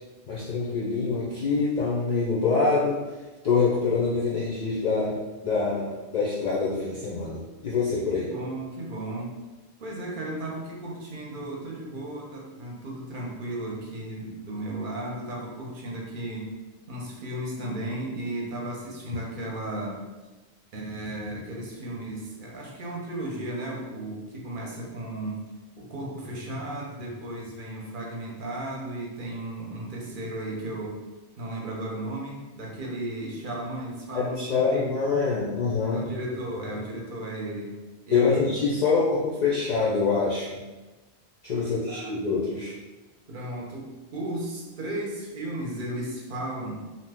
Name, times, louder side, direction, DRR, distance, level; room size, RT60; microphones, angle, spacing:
voice 1, 0.3-3.0 3.4-5.2 5.4-8.3 34.1-36.0 38.1-40.6 41.4-42.7, left 4 dB, 60° left, -6 dB, 0.5 m, -25 dB
voice 2, 8.1-9.4 9.8-16.5 16.9-20.0 20.7-25.4 25.8-31.0 31.4-34.9 35.9-37.7 38.1-38.5 41.9-42.1 43.3-46.8, right 1 dB, 55° right, -2 dB, 0.8 m, -35 dB
2.7 x 2.1 x 3.4 m, 1.2 s
omnidirectional pair, 1.1 m